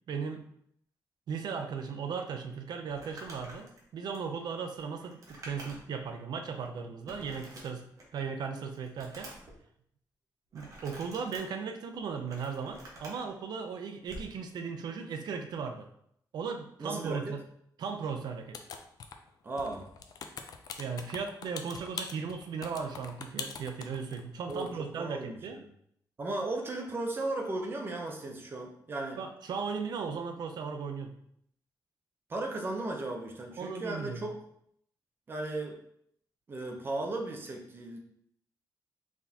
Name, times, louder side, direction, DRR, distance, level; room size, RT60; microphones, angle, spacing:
voice 1, 0.1-0.4 1.3-7.8 8.1-9.3 10.5-15.9 16.3-17.4 17.8-18.6 20.8-25.6 29.2-31.2 33.6-34.3, right 5 dB, 70° right, 6 dB, 0.5 m, -37 dB
Crumpling crinkling, 2.9-6.0 6.4-6.5 7.1-8.2 8.6-9.5 10.5-11.4 12.0-13.2 14.0-14.3, right 1 dB, 45° right, 1.0 m, -48 dB
voice 2, 16.8-17.2 19.4-19.8 24.5-24.7 25.0-25.7 26.2-29.2 32.3-34.3 35.3-35.7 36.5-38.0, right 2 dB, 30° right, 2 dB, 0.7 m, -35 dB
sound 1, 18.5-19.3 19.6-24.2 24.5-24.7, left 6 dB, 60° left, 0.4 m, -42 dB
4.1 x 3.5 x 2.8 m, 0.70 s
wide cardioid pair, 170°, 7 cm